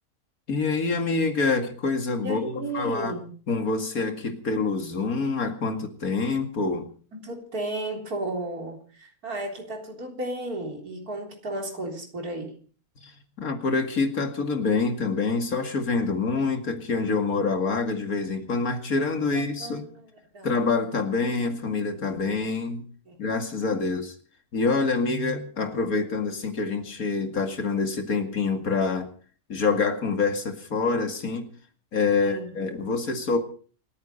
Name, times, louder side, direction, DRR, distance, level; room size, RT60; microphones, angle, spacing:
voice 1, 0.5-3.2 3.5-6.9 13.0-13.1 13.4-19.9 20.4-22.8 23.2-24.1 24.5-29.1 29.5-31.5 31.9-33.4, left 4 dB, 75° left, 6 dB, 2.7 m, -26 dB
voice 2, 2.2-3.3 7.1-12.6 19.3-20.1 20.3-20.5 23.1-23.2 32.2-32.6, right 1 dB, 90° right, 2 dB, 4.2 m, -34 dB
28.0 x 9.5 x 5.5 m, 0.43 s
omnidirectional pair, 1.5 m